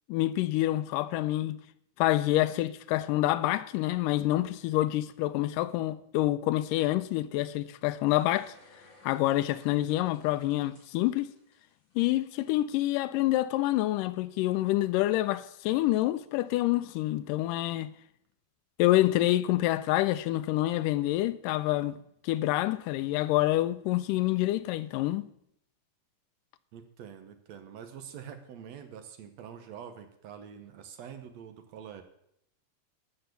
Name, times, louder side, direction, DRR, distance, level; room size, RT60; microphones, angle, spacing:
voice 1, 0.1-1.6 2.0-8.5 9.0-11.3 12.0-17.9 18.8-22.0 22.2-25.3, left 16 dB, 85° left, 2.2 m, -27 dB
sound 1, 8.1-12.4 12.8-12.9, left 2 dB, 40° left, 5.5 m, -59 dB
voice 2, 26.7-32.0, right 8 dB, 65° right, 1.9 m, -45 dB
12.5 x 6.9 x 6.8 m
omnidirectional pair, 3.8 m